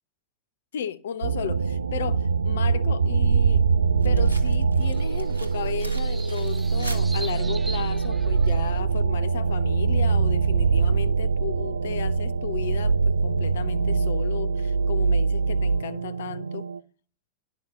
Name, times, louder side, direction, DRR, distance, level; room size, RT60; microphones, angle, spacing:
voice 1, 0.7-3.7 4.0-16.6, left 9 dB, 60° left, 0.7 m, -34 dB
sound 1, 1.2-16.8, right 5 dB, 75° right, 0.4 m, -23 dB
sound 2, 4.0-9.0, right 1 dB, 90° left, 1.5 m, -45 dB
sound 3, 4.8-8.8, right 3 dB, 10° right, 0.5 m, -42 dB
11.0 x 6.1 x 6.7 m
figure-of-eight pair, 90°, 0 cm